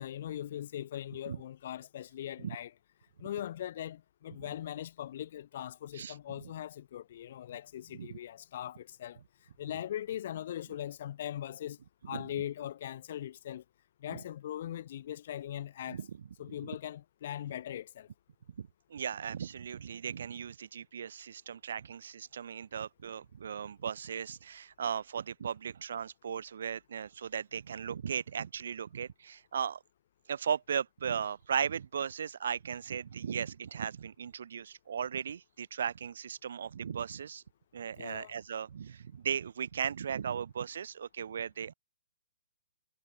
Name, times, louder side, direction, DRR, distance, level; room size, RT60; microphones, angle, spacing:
voice 1, 0.0-2.7 3.2-9.2 9.6-11.8 12.1-13.6 14.0-16.0 16.4-18.1 38.0-38.3, left 11 dB, 50° left, 2.8 m, -40 dB
voice 2, 18.6-29.8 30.3-37.4 37.7-41.7, right 7 dB, 65° right, 1.0 m, -37 dB
hypercardioid pair, 155°, 0 cm